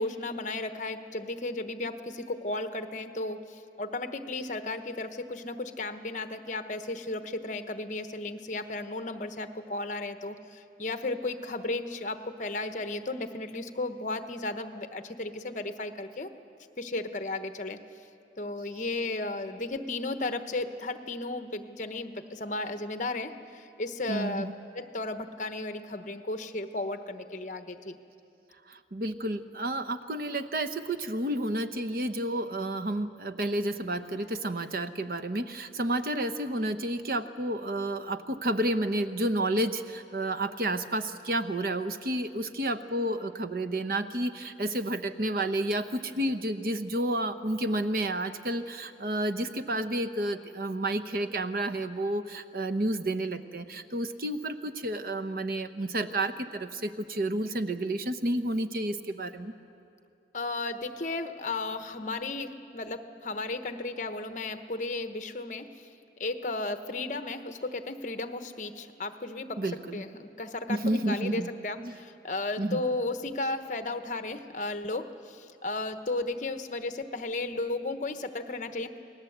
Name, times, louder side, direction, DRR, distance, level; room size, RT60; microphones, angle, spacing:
voice 1, 0.0-16.3 16.8-17.8 18.4-24.5 24.7-28.0 60.3-65.9 66.2-79.0, left 2 dB, 45° left, 8 dB, 1.1 m, -34 dB
voice 2, 24.1-24.5 28.7-59.5 69.6-70.0 70.7-71.5 71.8-72.0 72.6-72.8, right 1 dB, 55° right, 11 dB, 0.9 m, -30 dB
28.5 x 19.5 x 8.0 m, 2.6 s
head